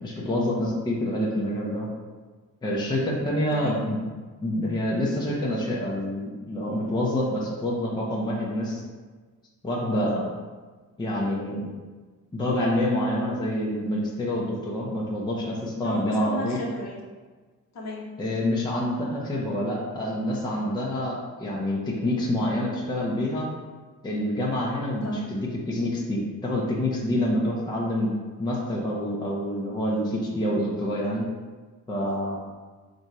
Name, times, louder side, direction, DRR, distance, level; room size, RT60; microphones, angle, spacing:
voice 1, 0.0-1.9 2.6-4.0 4.4-8.8 9.6-10.3 11.0-11.6 12.3-16.6 18.2-23.5 24.0-28.1 28.4-31.3 31.9-32.4, left 1 dB, 15° left, -4 dB, 0.6 m, -27 dB
voice 2, 3.5-3.8 15.8-17.0 17.7-18.1 25.0-25.3, equal, 50° left, -2 dB, 0.9 m, -35 dB
4.2 x 2.6 x 4.6 m, 1.4 s
wide cardioid pair, 165°, 34 cm